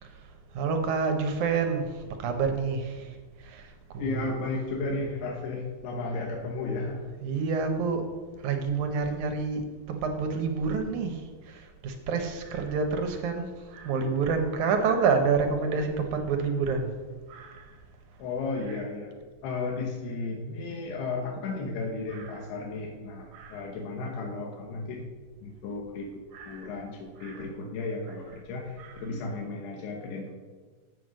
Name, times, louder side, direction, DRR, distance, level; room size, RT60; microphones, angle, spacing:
voice 1, 0.5-3.2 3.4-4.3 7.2-8.1 8.4-16.9 17.3-17.7 18.7-18.8 22.1-22.5 23.3-23.6 26.3-26.7 27.2-27.4 28.8-29.1, right 5 dB, 75° right, 5 dB, 1.8 m, -29 dB
voice 2, 4.0-7.0 18.2-19.1 19.4-25.1 25.4-26.1 26.4-30.3, left 3 dB, 90° left, 0 dB, 3.1 m, -34 dB
8.0 x 7.8 x 6.3 m, 1.4 s
omnidirectional pair, 4.5 m